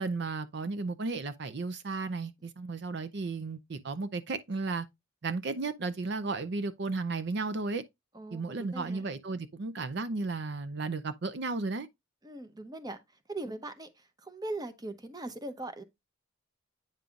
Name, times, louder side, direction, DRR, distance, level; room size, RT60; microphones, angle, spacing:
voice 1, 0.0-4.9 5.2-7.8 8.3-11.9, right 3 dB, 55° right, 0.5 m, -34 dB
voice 2, 8.1-9.0 12.2-13.0 13.3-15.8, right 2 dB, 20° right, 0.7 m, -40 dB
8.9 x 5.4 x 2.4 m
head